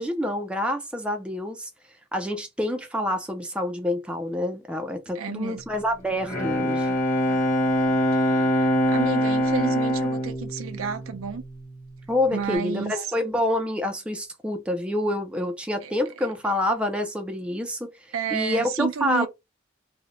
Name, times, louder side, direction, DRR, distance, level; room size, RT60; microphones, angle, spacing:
voice 1, 0.0-1.7 2.1-6.9 12.1-17.9 18.3-19.3, left 1 dB, 5° right, 0.3 m, -27 dB
voice 2, 5.2-5.6 8.1-11.4 12.3-12.9 15.8-15.9 18.1-19.3, right 6 dB, 85° right, 0.5 m, -31 dB
Bowed string instrument, 6.0-11.8, equal, 30° left, 1.2 m, -24 dB
2.5 x 2.1 x 2.8 m
head